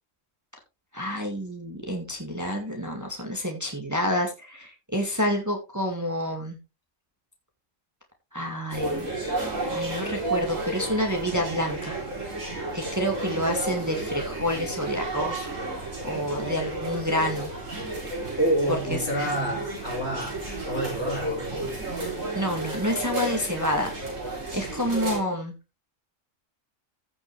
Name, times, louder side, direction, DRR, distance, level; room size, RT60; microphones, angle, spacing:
voice 1, 0.9-6.6 8.3-9.1 9.7-12.0 12.7-15.5 16.0-17.5 18.7-19.3 22.3-23.9 24.5-25.5, equal, 15° right, 1.9 m, -28 dB
sound 1, 8.7-25.2, right 2 dB, 75° right, 3.9 m, -32 dB
voice 2, 18.4-21.7, right 1 dB, 55° left, 5.1 m, -28 dB
15.0 x 6.1 x 3.2 m
omnidirectional pair, 1.4 m